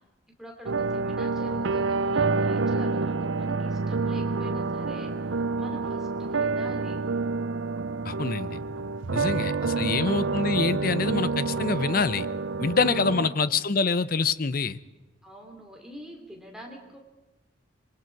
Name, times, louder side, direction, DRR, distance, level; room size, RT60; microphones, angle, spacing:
voice 1, 0.4-5.1 5.6-7.0 9.1-10.1 13.0-13.5 15.2-17.0, equal, 5° right, 0 dB, 3.0 m, -45 dB
sound 1, 0.7-13.3, right 4 dB, 75° right, 0.7 m, -28 dB
voice 2, 8.0-8.6 9.1-12.3 12.6-14.8, left 4 dB, 45° left, 15 dB, 0.7 m, -26 dB
26.5 x 22.5 x 4.7 m, 1.1 s
head